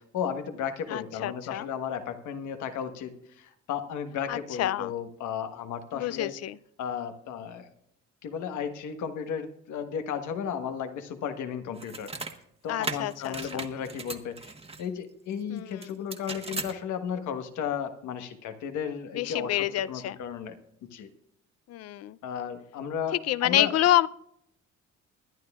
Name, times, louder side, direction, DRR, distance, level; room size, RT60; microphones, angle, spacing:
voice 1, 0.0-6.3 6.8-7.7 8.2-12.1 12.6-14.5 14.8-20.6 20.8-21.1 22.2-23.7, left 8 dB, 80° left, 7 dB, 1.4 m, -34 dB
voice 2, 0.9-1.7 4.3-4.9 5.9-6.5 12.7-13.6 15.5-15.7 19.2-20.2 21.7-22.2 23.3-24.1, left 13 dB, 60° left, 19 dB, 0.5 m, -27 dB
sound 1, 11.8-12.4 12.8-14.8 15.8-16.7, right 3 dB, 20° right, 1.2 m, -37 dB
21.5 x 11.0 x 2.4 m, 0.73 s
cardioid pair, 100°, 29 cm